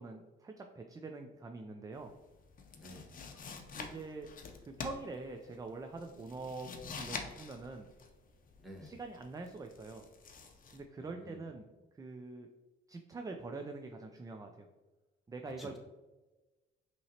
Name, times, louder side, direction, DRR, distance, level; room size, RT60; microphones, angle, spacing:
voice 1, 0.0-2.1 3.3-4.3 4.6-7.9 8.8-10.1 10.7-11.7 11.9-12.5 12.9-14.7 15.3-15.8, right 3 dB, 20° right, 5 dB, 0.3 m, -45 dB
sound 1, 2.0-10.8, left 5 dB, 45° left, 0.6 m, -47 dB
voice 2, 2.7-3.1 8.6-8.9 11.0-11.4 15.6-15.8, equal, ahead, -3 dB, 1.2 m, -51 dB
5.4 x 2.9 x 2.8 m, 1.2 s
cardioid pair, 90°, 20 cm